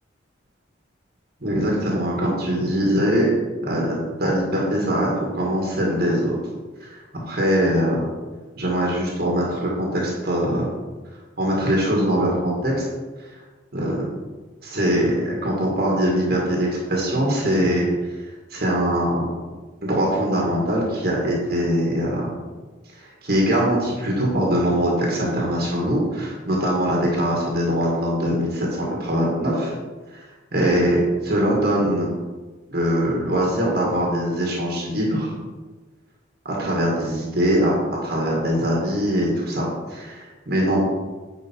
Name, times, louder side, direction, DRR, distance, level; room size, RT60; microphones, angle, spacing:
voice 1, 1.4-3.3 3.6-6.4 6.8-8.1 8.6-10.7 11.4-12.9 13.7-14.0 14.6-17.9 18.5-19.3 19.8-22.3 23.0-29.7 30.1-30.2 30.5-32.1 32.7-35.3 36.5-37.7 38.0-40.9, equal, 50° right, -3 dB, 1.9 m, -22 dB
9.3 x 5.4 x 4.6 m, 1.3 s
head